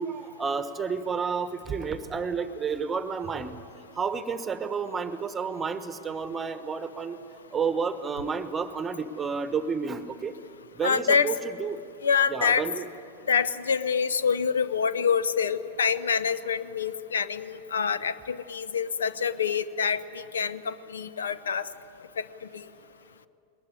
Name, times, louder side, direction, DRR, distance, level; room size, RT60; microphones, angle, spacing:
voice 1, 0.0-3.6 3.9-7.2 7.5-10.3 10.7-11.8 12.3-12.9, right 5 dB, 20° right, 12 dB, 1.2 m, -31 dB
voice 2, 10.8-11.3 12.0-12.6 13.3-21.7, left 6 dB, 70° left, 15 dB, 0.7 m, -26 dB
21.5 x 19.5 x 9.7 m, 2.8 s
figure-of-eight pair, 90°, 0 cm